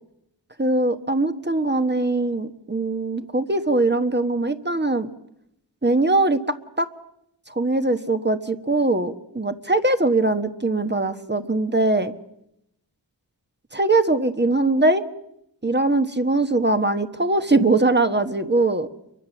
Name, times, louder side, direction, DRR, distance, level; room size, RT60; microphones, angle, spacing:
voice 1, 0.6-5.1 5.8-6.9 7.5-12.1 13.7-15.0 15.6-18.9, right 2 dB, 25° right, 8 dB, 1.4 m, -21 dB
30.0 x 23.0 x 7.2 m, 0.80 s
wide cardioid pair, 75°, 44 cm